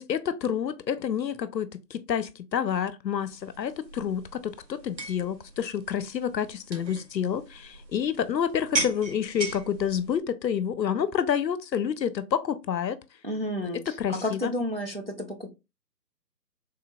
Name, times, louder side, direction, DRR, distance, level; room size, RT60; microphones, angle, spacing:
voice 1, 0.0-13.0 13.9-14.5, left 8 dB, 85° left, 0.6 m, -29 dB
sound 1, 3.2-10.2, right 3 dB, 85° right, 1.3 m, -38 dB
voice 2, 13.2-13.9 14.2-15.5, left 1 dB, 40° right, 0.4 m, -31 dB
3.5 x 2.1 x 2.6 m
figure-of-eight pair, 150°, 50 cm